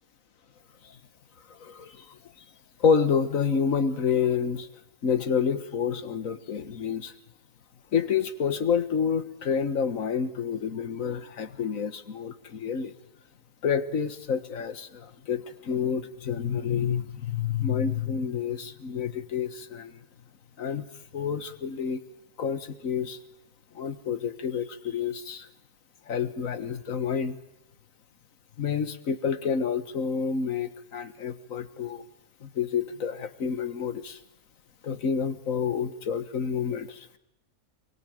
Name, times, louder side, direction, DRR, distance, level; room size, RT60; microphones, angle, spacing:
voice 1, 1.5-2.2 2.8-4.7 5.0-7.1 7.9-12.9 13.6-20.0 20.6-20.9 21.1-22.0 22.4-23.2 23.7-25.5 26.1-27.4 28.6-32.0 32.4-34.2 34.8-37.1, left 6 dB, 65° left, 11 dB, 1.8 m, -28 dB
26.0 x 23.0 x 9.1 m, 0.86 s
omnidirectional pair, 1.5 m